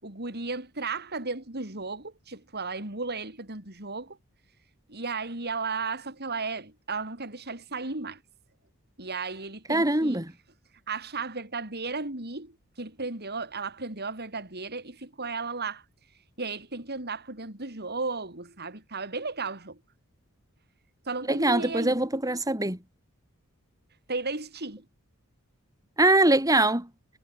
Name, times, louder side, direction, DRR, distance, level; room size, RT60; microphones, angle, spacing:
voice 1, 0.0-4.2 4.9-8.2 9.0-10.2 10.9-15.8 16.4-19.8 21.1-22.0 24.1-24.9, right 4 dB, 45° right, 5.3 m, -34 dB
voice 2, 9.7-10.3 21.3-22.8 26.0-26.9, right 2 dB, 15° right, 5.7 m, -23 dB
head